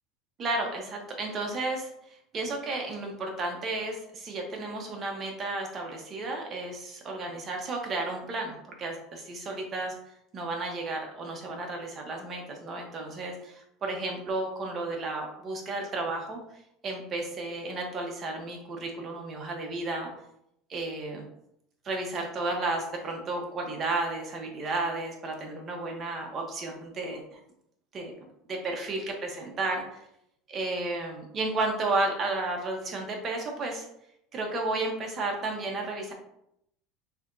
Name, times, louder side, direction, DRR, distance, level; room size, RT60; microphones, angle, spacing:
voice 1, 0.4-10.0 10.3-20.1 20.7-21.3 21.8-27.4 27.9-28.1 28.5-30.0 30.5-33.9 34.3-36.1, right 2 dB, 30° right, 1 dB, 1.0 m, -33 dB
4.8 x 3.5 x 2.7 m, 0.77 s
supercardioid pair, 135°, 0 cm